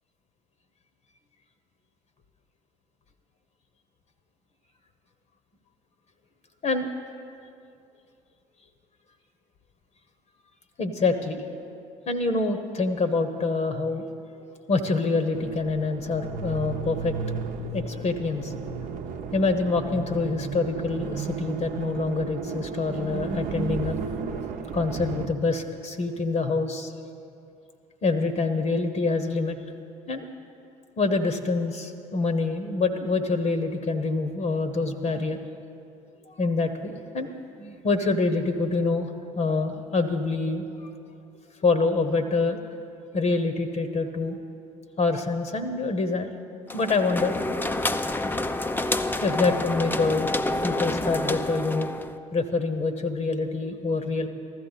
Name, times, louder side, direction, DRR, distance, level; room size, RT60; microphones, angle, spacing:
voice 1, 10.8-11.4 12.1-14.0 14.3-14.4 14.7-17.1 17.7-18.5 19.3-24.0 24.7-26.9 28.0-29.6 30.1-30.3 31.0-35.4 36.4-39.1 39.3-40.7 41.6-42.6 43.1-44.4 45.0-46.3 46.7-47.4 49.2-50.3 50.6-51.9 52.3-54.3, left 3 dB, 40° left, 8 dB, 1.0 m, -26 dB
sound 1, 15.3-25.3, right 5 dB, 50° right, 0.8 m, -33 dB
sound 2, 46.7-52.2, left 2 dB, 10° left, 0.5 m, -28 dB
15.0 x 12.5 x 4.1 m, 2.5 s
figure-of-eight pair, 55°, 18 cm